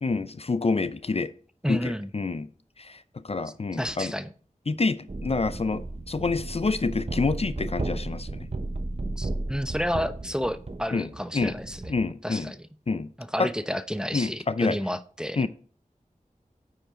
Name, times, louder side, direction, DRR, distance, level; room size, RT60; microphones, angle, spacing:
voice 1, 0.0-1.3 1.7-2.5 2.8-3.0 3.2-4.1 4.7-8.5 10.9-11.1 11.3-11.5 11.9-12.5 12.9-13.1 13.4-13.5 14.1-14.8 15.4-15.5, left 3 dB, 45° left, 0.4 m, -27 dB
voice 2, 1.6-2.1 3.7-4.3 9.2-11.9 12.2-12.7 13.2-15.5, equal, 5° right, 0.5 m, -31 dB
sound 1, 5.1-12.1, right 2 dB, 45° right, 0.9 m, -34 dB
9.4 x 5.3 x 3.7 m
wide cardioid pair, 50°, 14 cm